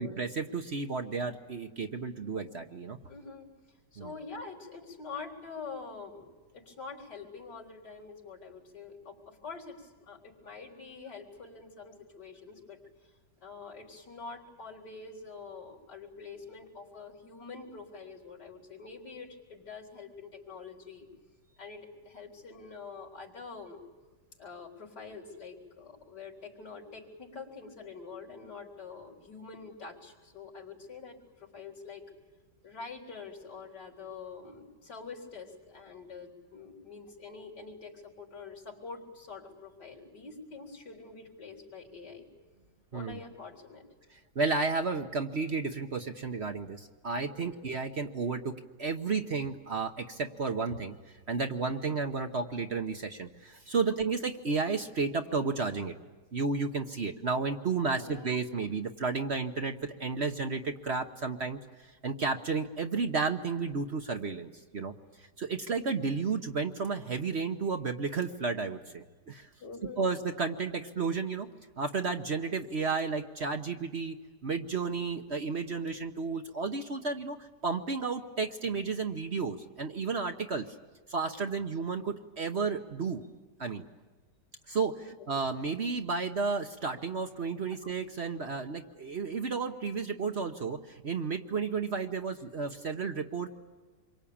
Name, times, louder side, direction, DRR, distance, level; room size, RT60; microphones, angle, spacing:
voice 1, 0.0-3.0 4.0-4.1 42.9-43.2 44.3-51.0 51.3-55.9 56.3-61.6 62.0-64.9 65.2-69.5 70.0-71.5 71.8-74.2 74.4-80.7 81.1-83.3 83.6-83.8 84.7-85.0 85.3-93.5, right 4 dB, 45° right, 6 dB, 1.1 m, -32 dB
voice 2, 3.1-3.5 3.9-6.2 6.5-12.8 13.4-21.1 21.6-23.8 24.4-32.1 32.6-42.3 42.9-43.8 47.3-47.5 53.7-54.0 57.9-58.3 69.6-70.0 85.0-85.1, left 4 dB, 75° left, -1 dB, 4.6 m, -46 dB
27.0 x 23.5 x 8.7 m, 1.3 s
omnidirectional pair, 1.8 m